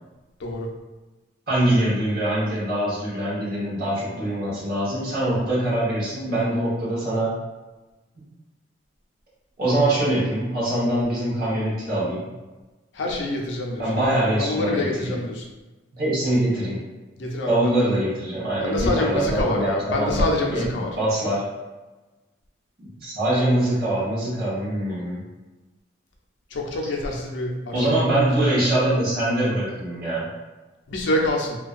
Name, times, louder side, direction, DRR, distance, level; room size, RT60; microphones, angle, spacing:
voice 1, 1.5-7.3 8.2-8.3 9.6-12.2 13.8-14.9 15.9-16.8 17.5-21.4 22.8-25.2 27.7-30.2, right 1 dB, 50° right, -9 dB, 1.0 m, -23 dB
voice 2, 12.9-15.5 17.2-17.9 18.6-20.9 26.5-27.9 28.4-28.5 30.9-31.6, left 1 dB, 70° left, 0 dB, 0.5 m, -26 dB
2.5 x 2.2 x 2.4 m, 1.2 s
head